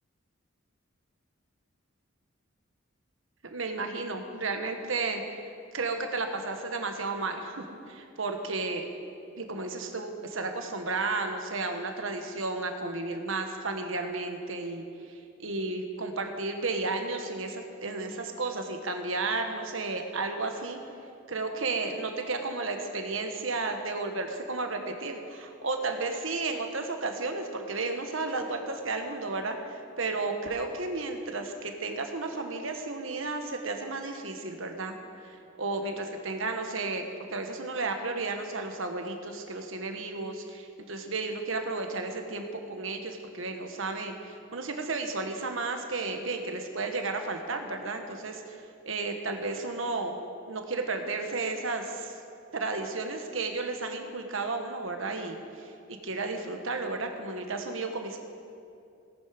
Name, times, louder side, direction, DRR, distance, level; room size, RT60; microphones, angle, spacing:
voice 1, 3.4-5.2 5.7-8.9 9.4-20.8 21.3-35.0 35.2-50.1 50.5-52.2 52.5-58.2, right 3 dB, 75° right, 5 dB, 1.4 m, -33 dB
18.0 x 11.0 x 5.2 m, 2.5 s
head